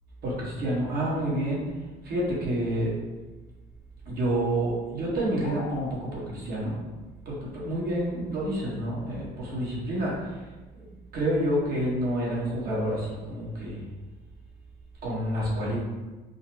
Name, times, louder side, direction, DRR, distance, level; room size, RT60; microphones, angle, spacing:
voice 1, 0.2-1.6 2.0-2.9 4.0-6.8 7.2-10.3 11.1-13.8 15.0-15.8, right 1 dB, 65° right, -5 dB, 1.1 m, -28 dB
sound 1, 5.4-6.0, left 4 dB, 65° left, 0.4 m, -38 dB
3.8 x 2.0 x 2.8 m, 1.2 s
cardioid pair, 110°, 17 cm